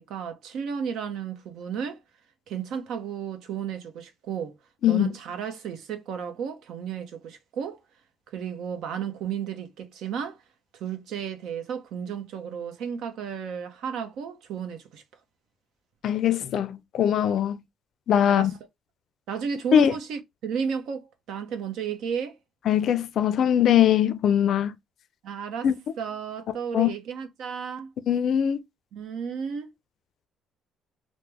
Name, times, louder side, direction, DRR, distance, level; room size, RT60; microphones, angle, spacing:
voice 1, 0.0-2.0 2.5-4.6 4.9-7.8 8.3-10.4 10.8-15.0 18.2-18.5 19.3-22.4 25.2-25.7 26.0-27.9 28.9-29.7, right 7 dB, 75° right, 0.7 m, -33 dB
voice 2, 4.8-5.1 16.0-17.6 18.1-18.5 19.7-19.9 22.7-24.7 25.6-25.7 26.7-26.9 28.1-28.6, left 10 dB, 60° left, 0.4 m, -21 dB
3.0 x 2.1 x 3.3 m
cardioid pair, 115°, 0 cm